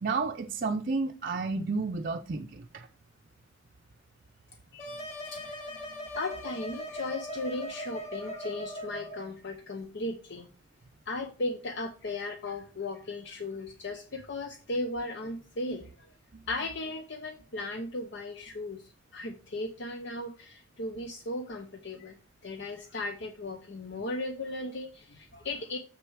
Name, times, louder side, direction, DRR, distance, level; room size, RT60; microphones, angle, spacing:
voice 1, 0.0-2.9 16.3-16.4, right 4 dB, 45° right, 0.5 m, -31 dB
sound 1, 4.8-9.3, equal, 35° left, 2.0 m, -40 dB
voice 2, 5.3-5.6 6.1-10.5 11.1-16.1 16.5-22.2 22.4-25.8, left 2 dB, 60° left, 0.8 m, -36 dB
6.9 x 6.6 x 4.6 m
head